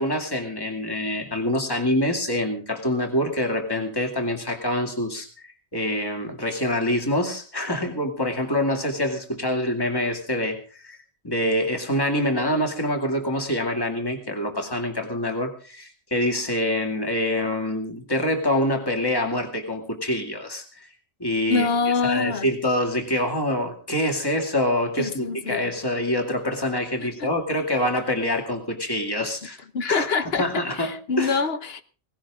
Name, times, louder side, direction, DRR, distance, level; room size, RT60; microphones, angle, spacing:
voice 1, 0.0-11.0 11.2-20.9 21.2-21.7 22.0-29.6 29.9-30.0 30.4-31.4, left 1 dB, 20° left, 2.5 m, -25 dB
voice 2, 21.5-22.5 25.0-25.7 27.0-27.3 29.7-31.8, left 4 dB, 65° left, 1.2 m, -25 dB
18.0 x 16.5 x 3.7 m
omnidirectional pair, 1.1 m